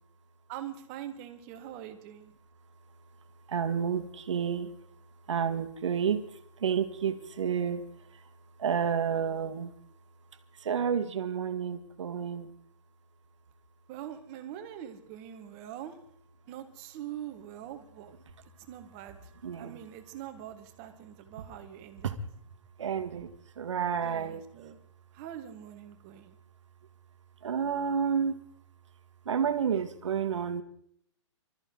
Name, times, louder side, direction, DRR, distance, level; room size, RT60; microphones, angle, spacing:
voice 1, 0.5-2.3 13.9-16.0 16.5-18.1 18.7-22.1 24.0-24.8 25.1-26.4, right 11 dB, 30° right, 7 dB, 1.7 m, -43 dB
voice 2, 3.5-9.7 10.5-12.5 19.4-19.8 21.4-21.5 22.0-22.3 22.8-24.4 27.4-28.4 29.2-30.6, right 7 dB, 65° right, 9 dB, 1.8 m, -31 dB
25.0 x 13.5 x 3.9 m, 0.66 s
hypercardioid pair, 150°, 17 cm